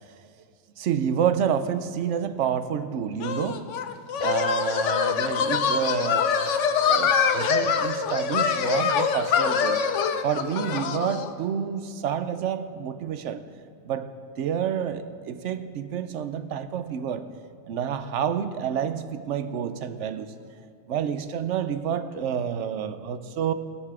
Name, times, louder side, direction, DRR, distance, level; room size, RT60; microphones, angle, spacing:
voice 1, 0.8-3.7 4.2-9.8 10.2-13.4 13.8-17.3 17.7-20.3 20.9-23.5, right 8 dB, 80° right, 1.0 m, -29 dB
sound 1, 3.2-11.3, left 6 dB, 90° left, 1.0 m, -24 dB
20.0 x 6.7 x 4.8 m
omnidirectional pair, 1.2 m